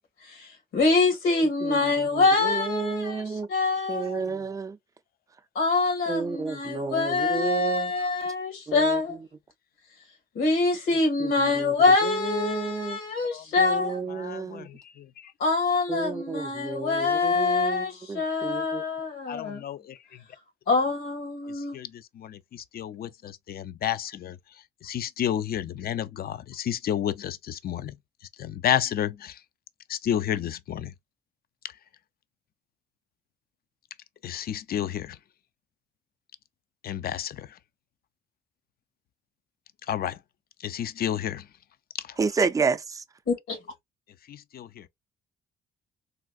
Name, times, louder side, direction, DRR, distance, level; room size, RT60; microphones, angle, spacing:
voice 1, 0.2-4.2 5.6-9.2 10.3-14.0 15.4-19.6 20.7-21.8 43.3-43.6, left 3 dB, 85° left, 2.0 m, -25 dB
voice 2, 1.6-3.5 3.9-4.8 6.1-7.9 8.7-9.0 11.2-11.7 12.0-13.0 13.6-14.7 15.9-18.8 42.2-43.0, right 5 dB, 15° right, 0.4 m, -31 dB
voice 3, 14.1-15.3 19.3-20.0 21.6-21.9 22.2-24.4 24.8-27.9 28.4-29.4 29.9-30.9 34.2-35.2 36.8-37.5 39.9-40.2 40.6-41.4 44.3-44.9, left 10 dB, 50° left, 0.4 m, -31 dB
3.6 x 2.4 x 2.3 m
cardioid pair, 90°, 20 cm